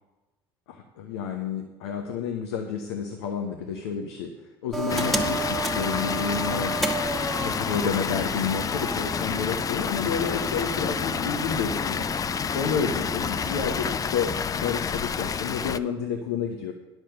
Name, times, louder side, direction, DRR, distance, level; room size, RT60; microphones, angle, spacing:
voice 1, 0.7-4.3 4.6-6.9 7.4-12.1 12.5-16.7, left 6 dB, 75° left, 4 dB, 0.9 m, -30 dB
sound 1, 4.7-13.9, right 2 dB, ahead, 1.4 m, -33 dB
Water, 4.9-15.8, left 6 dB, 25° left, 0.4 m, -29 dB
10.0 x 6.3 x 6.6 m, 1.1 s
hypercardioid pair, 70°, 14 cm